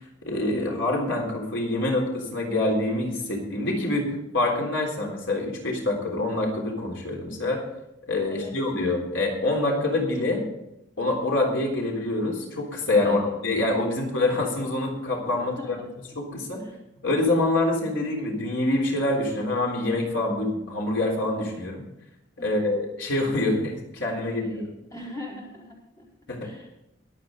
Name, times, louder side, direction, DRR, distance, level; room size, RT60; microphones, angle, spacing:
voice 1, 0.3-4.1 4.3-7.6 8.1-10.4 11.0-15.5 16.2-16.6 17.0-21.8 22.4-24.7 26.3-26.5, left 2 dB, 80° left, 0 dB, 3.5 m, -26 dB
voice 2, 13.0-13.4 13.9-14.2 15.4-15.9 16.6-16.8 22.4-22.8 24.2-26.1 26.4-26.7, left 1 dB, 20° left, -5 dB, 4.4 m, -42 dB
22.5 x 8.4 x 3.9 m, 0.87 s
head